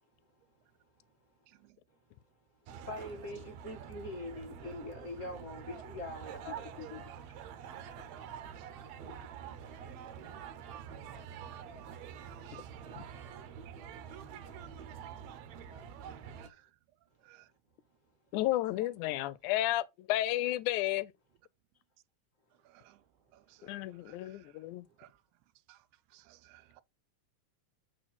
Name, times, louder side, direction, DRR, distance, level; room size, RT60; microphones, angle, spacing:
sound 1, 2.7-16.5, right 8 dB, 70° right, 1.9 m, -46 dB
voice 1, 2.8-6.8, left 2 dB, 35° left, 1.4 m, -43 dB
voice 2, 6.8-7.1 12.5-12.6 13.0-13.1 18.3-21.1 23.6-24.9, left 15 dB, 85° left, 2.0 m, -33 dB
voice 3, 22.7-23.0 23.3-24.5 25.0-25.1 25.7-25.8 26.1-26.8, right 16 dB, 90° right, 2.0 m, -60 dB
7.7 x 4.5 x 4.2 m
omnidirectional pair, 3.4 m